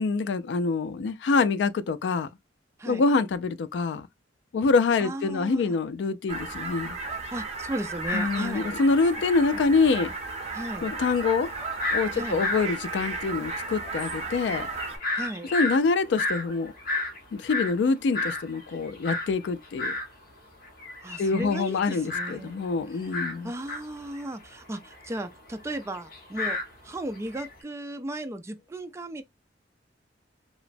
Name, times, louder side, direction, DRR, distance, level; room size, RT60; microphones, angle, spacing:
voice 1, 0.0-2.3 2.9-4.1 4.5-7.0 8.1-10.1 10.8-11.5 11.9-14.7 15.5-16.7 17.3-19.9 21.2-23.5, left 4 dB, 70° left, 0.3 m, -25 dB
voice 2, 5.0-5.8 7.3-8.8 10.5-10.9 12.1-12.4 15.1-15.5 21.0-22.6 22.9-23.1 23.4-29.2, right 1 dB, 15° right, 0.3 m, -36 dB
sound 1, 6.3-15.0, right 3 dB, 40° right, 0.8 m, -35 dB
sound 2, 8.1-9.3 9.6-9.7 9.9-20.1 20.5-27.5, left 2 dB, 55° left, 1.0 m, -33 dB
3.0 x 2.0 x 2.5 m
head